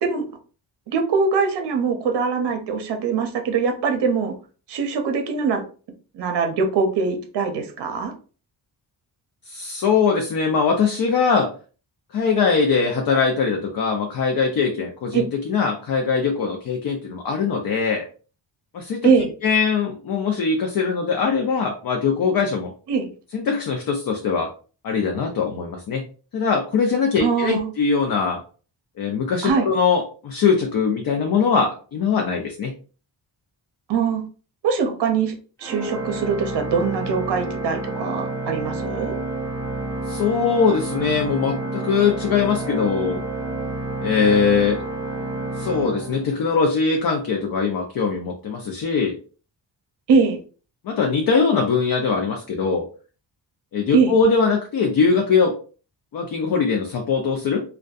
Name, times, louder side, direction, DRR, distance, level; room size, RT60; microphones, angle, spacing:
voice 1, 0.9-4.3 4.7-5.6 6.1-8.1 15.1-15.2 19.0-19.3 22.9-23.1 27.2-27.7 29.4-29.7 33.9-34.2 34.6-35.3 35.6-39.2 50.1-50.4 53.9-54.1, right 5 dB, 65° right, 5 dB, 0.6 m, -22 dB
voice 2, 9.5-11.5 12.1-18.1 18.7-19.1 19.4-22.7 23.3-24.5 24.8-26.0 26.3-28.4 29.0-32.7 40.1-43.2 44.0-44.8 45.6-49.1 50.8-52.9 53.7-55.5 56.1-57.6, left 5 dB, 50° left, 2 dB, 0.5 m, -21 dB
Organ, 35.6-46.8, right 2 dB, 5° left, 0.7 m, -29 dB
2.5 x 2.3 x 2.3 m, 0.38 s
wide cardioid pair, 150°, 45 cm